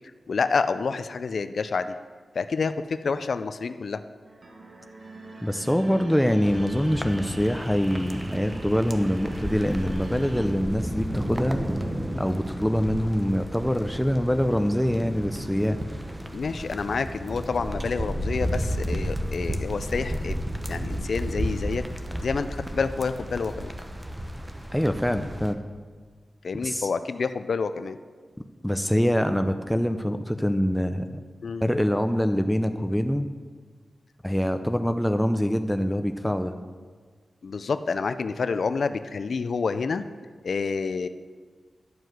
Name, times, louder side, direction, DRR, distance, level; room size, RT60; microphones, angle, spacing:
voice 1, 0.3-2.0 2.4-4.0 16.3-20.4 20.7-21.8 22.2-23.7 26.4-28.0 31.4-31.6 37.4-40.0 40.4-41.1, left 4 dB, 75° left, 11 dB, 0.4 m, -28 dB
sound 1, 4.2-10.5, right 2 dB, 60° right, 1.5 m, -44 dB
voice 2, 5.4-11.6 12.2-15.8 24.7-25.6 26.6-26.9 28.6-31.1 31.6-33.3 34.2-36.5, equal, 5° left, 7 dB, 0.6 m, -24 dB
sound 2, 6.4-25.5, equal, 15° right, 1.0 m, -32 dB
11.0 x 4.7 x 7.8 m, 1.5 s
cardioid pair, 45°, 0 cm